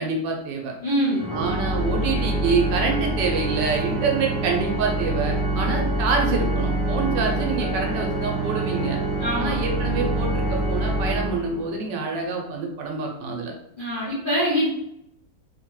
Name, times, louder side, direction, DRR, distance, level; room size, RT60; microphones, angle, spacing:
voice 1, 0.0-0.7 1.3-9.0 9.4-13.5, right 4 dB, 80° right, 1 dB, 1.3 m, -26 dB
voice 2, 0.8-1.3 9.2-9.6 13.8-14.7, equal, 40° left, -9 dB, 0.8 m, -23 dB
Organ, 1.1-11.9, right 2 dB, 5° left, 1.1 m, -25 dB
3.2 x 2.2 x 2.9 m, 0.78 s
omnidirectional pair, 1.9 m